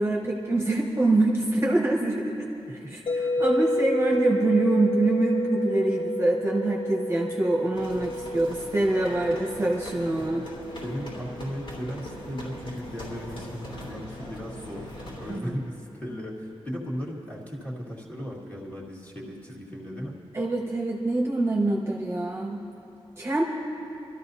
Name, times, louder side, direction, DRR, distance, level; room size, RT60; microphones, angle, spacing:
voice 1, 0.0-2.3 2.9-10.4 15.3-15.5 20.3-22.6 23.2-23.4, right 2 dB, 25° right, -1 dB, 1.0 m, -25 dB
sound 1, 3.1-13.1, left 1 dB, 90° left, 3.3 m, -31 dB
sound 2, 7.7-15.4, left 1 dB, 65° left, 3.5 m, -41 dB
voice 2, 10.2-10.5 10.8-20.2, equal, 15° left, -4 dB, 1.9 m, -36 dB
27.5 x 13.0 x 2.7 m, 2.8 s
wide cardioid pair, 175°, 10 cm